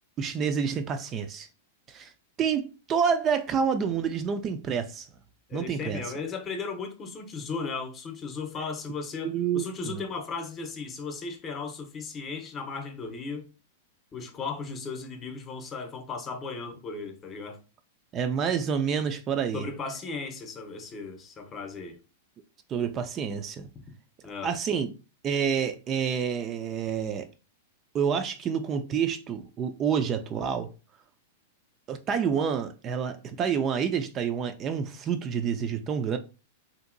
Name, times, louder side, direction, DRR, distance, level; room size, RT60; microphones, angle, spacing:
voice 1, 0.2-1.5 1.9-2.1 2.4-5.1 5.5-6.0 9.2-10.1 18.1-19.7 22.7-23.7 24.4-24.9 25.2-27.3 27.9-30.7 31.9-36.2, right 7 dB, 30° right, 0.3 m, -28 dB
voice 2, 5.5-13.5 14.1-17.6 19.5-22.0 24.2-24.5, left 4 dB, 30° left, 0.7 m, -36 dB
2.8 x 2.7 x 2.5 m
hypercardioid pair, 110°, 0 cm